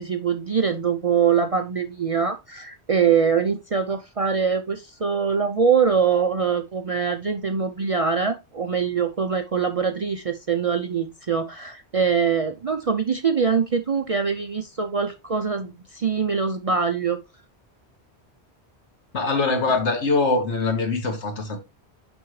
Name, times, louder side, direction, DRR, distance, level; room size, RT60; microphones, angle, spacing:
voice 1, 0.0-17.2, right 6 dB, 45° right, 0.4 m, -23 dB
voice 2, 19.1-21.6, left 3 dB, 90° left, 1.8 m, -23 dB
6.0 x 5.6 x 3.1 m
omnidirectional pair, 1.1 m